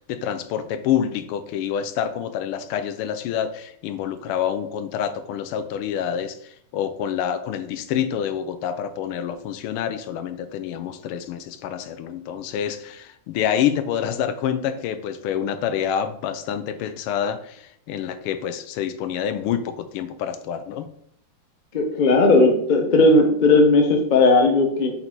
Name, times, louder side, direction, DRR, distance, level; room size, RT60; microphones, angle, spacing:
voice 1, 0.0-20.9, left 9 dB, 85° left, 9 dB, 1.5 m, -27 dB
voice 2, 21.7-24.9, left 2 dB, 65° left, 3 dB, 0.4 m, -16 dB
5.4 x 4.1 x 4.5 m, 0.70 s
omnidirectional pair, 2.4 m